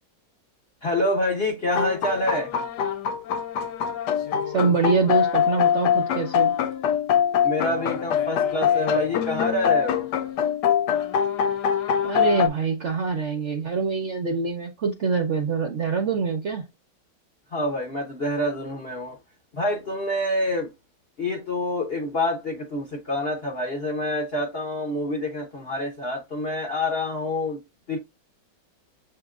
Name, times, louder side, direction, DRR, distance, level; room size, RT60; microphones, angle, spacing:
voice 1, 0.8-2.5 7.4-10.1 17.5-19.2 19.5-20.7 21.2-27.6 27.9-28.0, left 1 dB, 50° left, 0.7 m, -27 dB
sound 1, 1.7-12.5, left 8 dB, 75° left, 1.2 m, -24 dB
voice 2, 4.5-6.5 12.0-16.7, right 5 dB, 60° right, 0.7 m, -25 dB
7.2 x 2.8 x 2.3 m
omnidirectional pair, 1.9 m